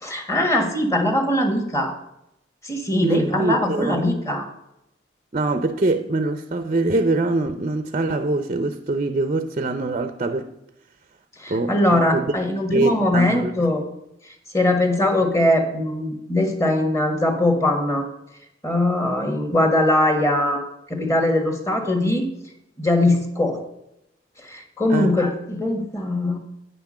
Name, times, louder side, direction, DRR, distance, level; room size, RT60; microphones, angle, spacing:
voice 1, 0.0-1.9 2.6-4.5 11.4-13.8 14.5-18.1 18.6-20.6 20.9-22.3 22.8-23.6 24.4-26.4, left 1 dB, 15° left, 1.5 m, -21 dB
voice 2, 3.0-4.0 5.3-10.5 11.5-12.3 12.7-13.5 24.9-25.1, right 2 dB, 40° right, 0.5 m, -23 dB
9.4 x 5.9 x 7.4 m
head